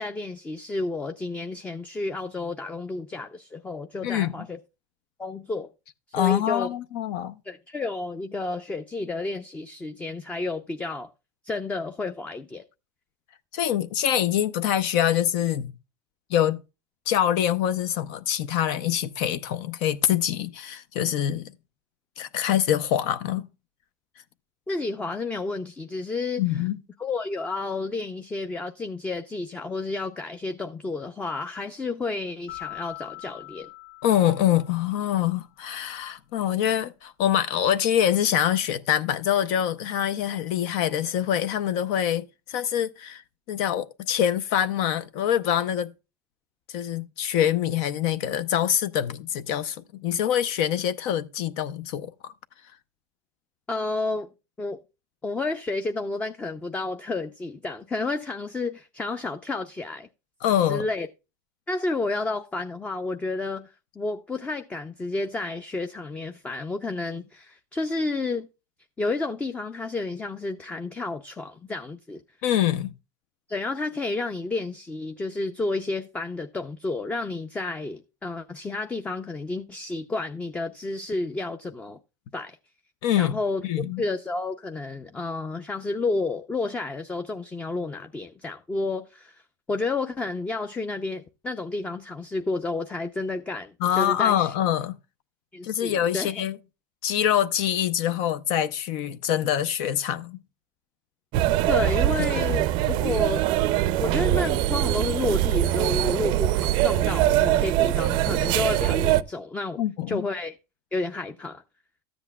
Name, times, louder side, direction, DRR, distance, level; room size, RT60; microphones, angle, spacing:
voice 1, 0.0-4.6 5.2-5.7 6.1-6.7 7.4-11.1 11.4-12.6 24.7-26.6 27.0-33.7 53.7-54.3 54.6-54.8 55.2-60.1 60.7-61.1 61.7-68.5 69.0-72.2 73.5-82.0 82.3-82.6 83.2-83.7 84.0-89.4 89.7-94.5 95.5-96.4 101.7-103.5 104.0-109.8 110.1-110.5 110.9-111.6, left 3 dB, 10° left, 0.5 m, -31 dB
voice 2, 4.0-4.3 6.1-7.4 13.5-15.7 16.3-16.6 17.1-21.5 22.2-23.4 26.4-26.8 34.0-43.2 43.5-45.9 46.7-49.8 50.0-52.3 60.4-60.8 72.4-72.9 83.0-83.4 83.6-84.0 93.8-95.0 95.6-96.6 97.0-100.4 102.5-102.6 102.9-103.0 109.8-110.2, left 10 dB, 60° left, 0.6 m, -25 dB
sound 1, 32.5-35.2, left 19 dB, 85° left, 2.3 m, -42 dB
sound 2, 101.3-109.2, right 14 dB, 50° right, 0.5 m, -23 dB
13.5 x 7.9 x 2.3 m
supercardioid pair, 135°, 11 cm